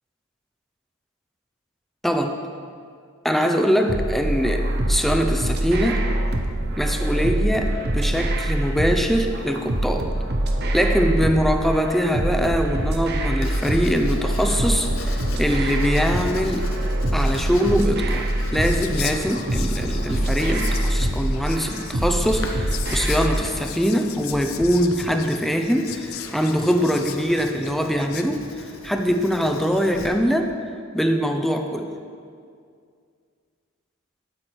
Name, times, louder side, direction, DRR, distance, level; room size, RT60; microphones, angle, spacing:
voice 1, 2.0-2.4 3.2-6.0 6.8-10.1 10.7-16.7 17.1-28.4 28.8-30.5 30.9-31.9, equal, ahead, 4 dB, 0.5 m, -23 dB
sound 1, 3.9-23.5, right 1 dB, 50° right, 0.8 m, -24 dB
Writing, 13.4-30.1, left 2 dB, 65° left, 0.9 m, -38 dB
Whispering, 18.6-28.2, left 11 dB, 85° left, 0.5 m, -38 dB
8.6 x 8.2 x 4.5 m, 2.2 s
head